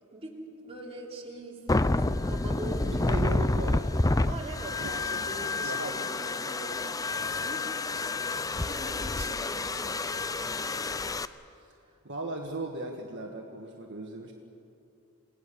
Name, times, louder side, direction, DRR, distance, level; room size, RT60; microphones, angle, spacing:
voice 1, 0.6-3.5 4.2-7.8 8.2-10.0 11.2-11.6, right 1 dB, 25° right, -1 dB, 3.4 m, -43 dB
sound 1, 1.7-11.2, left 2 dB, 15° left, 0.5 m, -29 dB
voice 2, 2.8-4.0 4.8-5.2 5.6-6.0 12.0-14.3, right 2 dB, 55° right, 1 dB, 1.7 m, -37 dB
28.0 x 19.0 x 7.0 m, 2.6 s
head